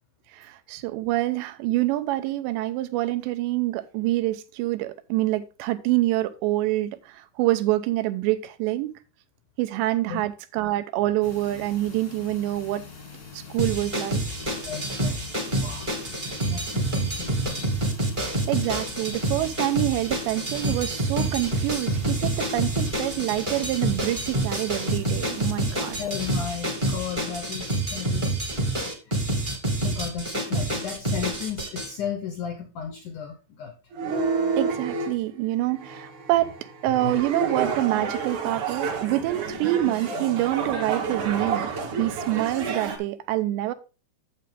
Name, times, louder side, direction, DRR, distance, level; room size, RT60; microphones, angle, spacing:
voice 1, 0.3-8.9 9.6-12.9 13.3-14.2 18.2-26.0 34.6-36.5 36.8-41.7 42.0-43.7, right 16 dB, 85° right, 3.0 m, -26 dB
sound 1, 11.2-27.9, left 5 dB, 45° left, 1.1 m, -44 dB
sound 2, 13.6-31.9, right 1 dB, 20° right, 1.2 m, -27 dB
voice 2, 14.7-15.2 15.6-15.9 16.5-17.7 25.7-28.4 29.1-29.2 29.8-33.7 37.0-37.1, left 8 dB, 80° left, 1.8 m, -34 dB
sound 3, 33.9-35.1 35.8-43.0, right 5 dB, 55° right, 2.4 m, -29 dB
8.4 x 7.7 x 3.6 m
omnidirectional pair, 5.0 m